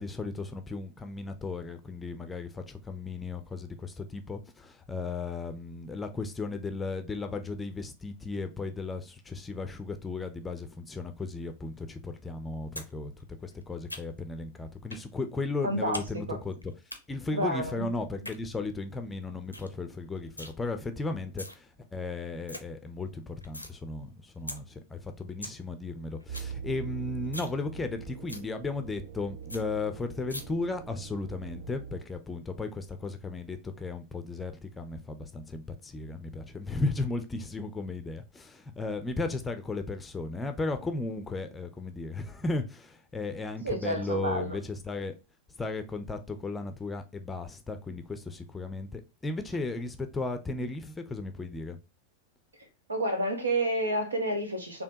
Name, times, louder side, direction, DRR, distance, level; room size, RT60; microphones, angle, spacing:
voice 1, 0.0-16.6 17.1-45.1 45.6-51.8, left 3 dB, 15° left, 0.6 m, -35 dB
sound 1, 12.8-12.9 13.2-14.3 14.9-15.1 15.4-16.1 16.3-17.0 18.0-18.4 18.8-18.9 19.2-19.3 19.5-19.7 20.0-20.5 21.1-21.6 22.0-22.1 22.3-22.6 23.0-23.7 24.1-24.2 24.5-24.6 25.0-25.1 25.2-25.6 25.9-26.0 26.2-26.5 26.8-26.9 27.2-27.6 27.9-28.0 28.3-28.5 28.9-29.0 29.2-29.3 29.5-29.6 30.3-30.4, left 1 dB, 90° left, 0.6 m, -40 dB
voice 2, 15.6-16.4 17.3-17.9 43.6-44.6 52.9-54.8, right 1 dB, 75° right, 1.0 m, -30 dB
sound 2, 26.3-32.0, right 7 dB, 60° right, 0.5 m, -42 dB
4.3 x 2.8 x 2.7 m
figure-of-eight pair, 90°, 0 cm